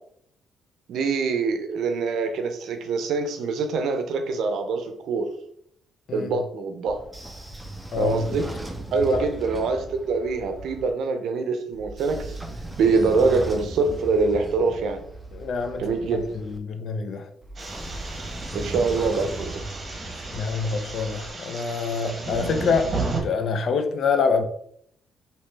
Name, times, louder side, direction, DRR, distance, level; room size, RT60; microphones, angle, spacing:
voice 1, 0.9-5.3 6.1-7.0 8.0-8.5 8.9-12.4 12.8-15.0 15.8-16.4 18.5-19.6 19.9-20.1, right 4 dB, 75° right, 0.5 m, -24 dB
Train / Sliding door, 6.9-10.9 11.7-16.6 17.4-21.3, right 1 dB, 10° right, 0.5 m, -37 dB
voice 2, 7.9-8.3 9.1-9.2 15.3-15.9 16.3-17.3 20.3-24.4, left 5 dB, 60° left, 0.5 m, -26 dB
sound 1, 17.6-23.2, right 3 dB, 35° right, 1.1 m, -33 dB
3.1 x 2.8 x 3.3 m
cardioid pair, 90°, 0 cm